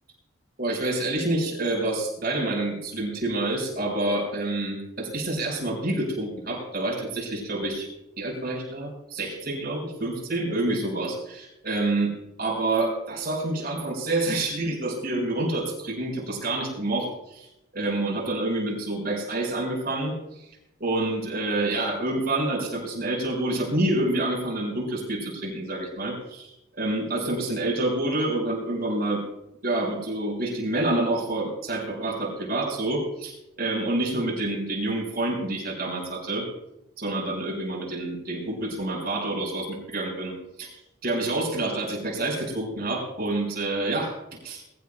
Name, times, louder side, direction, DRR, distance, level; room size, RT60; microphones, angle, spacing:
voice 1, 0.6-7.9 8.2-12.1 12.4-17.5 17.7-20.5 20.8-29.2 29.6-36.5 37.0-44.1 44.4-44.6, right 2 dB, 50° right, -1 dB, 5.8 m, -28 dB
23.5 x 14.5 x 2.3 m, 0.90 s
head